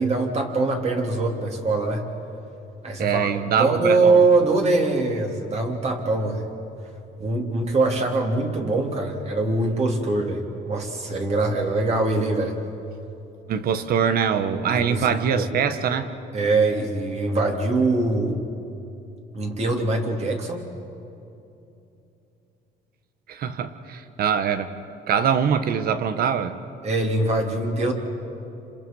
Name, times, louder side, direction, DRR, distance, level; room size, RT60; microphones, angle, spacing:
voice 1, 0.0-2.1 2.8-3.3 3.6-6.4 7.2-12.6 14.7-15.5 16.3-18.5 19.3-20.7 26.8-27.9, right 3 dB, 40° right, 1 dB, 3.7 m, -23 dB
voice 2, 3.0-4.2 13.5-16.1 23.3-24.7 25.1-26.6, right 7 dB, 60° right, 10 dB, 1.5 m, -23 dB
29.5 x 26.5 x 5.7 m, 2.8 s
cardioid pair, 110°, 17 cm